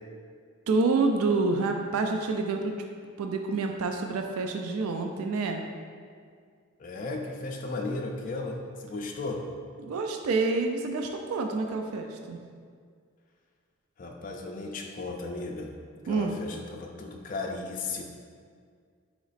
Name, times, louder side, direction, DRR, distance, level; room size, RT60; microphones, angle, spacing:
voice 1, 0.7-2.9 3.2-5.6 9.8-12.4 16.1-16.3, right 3 dB, 90° right, 4 dB, 0.3 m, -28 dB
voice 2, 6.8-9.4 14.0-15.7 16.1-18.0, left 3 dB, 40° left, 1 dB, 0.4 m, -35 dB
4.1 x 3.0 x 4.0 m, 2.1 s
head